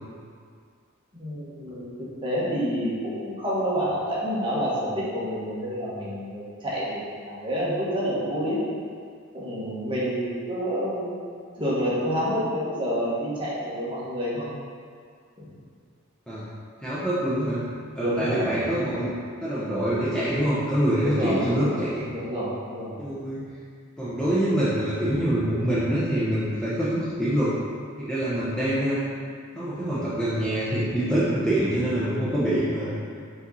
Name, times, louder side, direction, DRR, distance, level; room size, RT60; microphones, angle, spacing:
voice 1, 1.1-8.6 9.3-14.5 18.0-18.6 21.0-21.7 22.1-22.9, equal, 25° right, -8 dB, 1.5 m, -28 dB
voice 2, 16.8-17.6 18.0-22.1 23.0-23.4 24.0-27.5 28.0-29.0 29.5-33.2, right 1 dB, 5° left, -11 dB, 0.7 m, -25 dB
5.7 x 4.1 x 4.0 m, 2.1 s
head